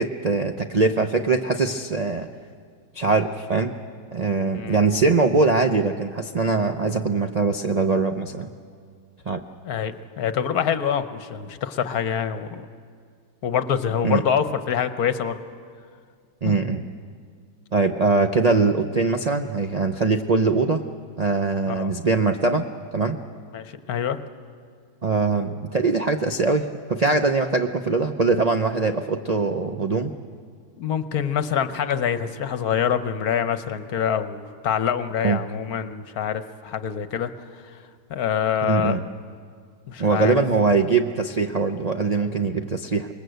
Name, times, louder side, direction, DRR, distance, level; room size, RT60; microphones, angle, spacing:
voice 1, 0.0-2.3 2.9-3.8 4.1-8.5 9.3-9.4 14.0-14.2 16.4-16.8 17.7-20.8 21.2-22.6 22.9-23.2 25.0-30.1 35.2-35.4 38.6-39.0 40.0-43.1, right 4 dB, 65° right, 6 dB, 0.3 m, -22 dB
voice 2, 9.6-12.7 13.4-15.4 16.4-16.6 21.7-21.9 23.5-24.2 30.8-37.8 38.1-39.0 39.9-40.4, left 8 dB, 65° left, 11 dB, 1.3 m, -25 dB
26.5 x 20.5 x 8.0 m, 2.1 s
omnidirectional pair, 1.8 m